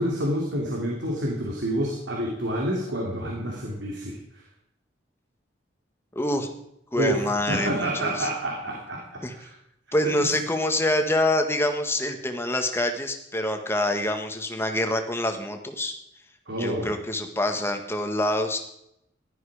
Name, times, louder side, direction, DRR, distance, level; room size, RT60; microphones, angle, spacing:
voice 1, 0.0-4.4 6.9-9.5 10.0-10.1 16.5-16.9, right 1 dB, 80° right, -1 dB, 3.2 m, -28 dB
voice 2, 6.1-6.5 6.9-8.3 9.2-9.3 9.9-16.0 16.6-18.6, left 1 dB, 15° left, 5 dB, 1.7 m, -26 dB
17.0 x 12.5 x 5.0 m, 0.78 s
head